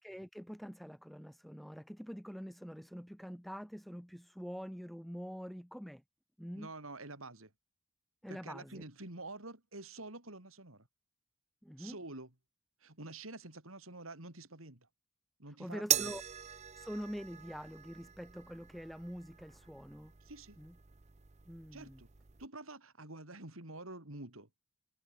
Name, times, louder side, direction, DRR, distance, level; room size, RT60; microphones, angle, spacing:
voice 1, 0.0-6.0 6.4-6.7 8.2-8.8 11.6-12.0 15.6-16.2 16.7-20.2 20.6-20.7 21.5-22.0, equal, ahead, 1.1 m, -45 dB
voice 2, 6.5-7.5 8.2-10.9 11.8-12.3 12.8-14.9 15.4-16.2 20.2-20.6 21.7-22.1 22.4-24.5, right 2 dB, 80° right, 4.8 m, -48 dB
sound 1, 15.9-22.5, right 11 dB, 35° right, 0.7 m, -40 dB
head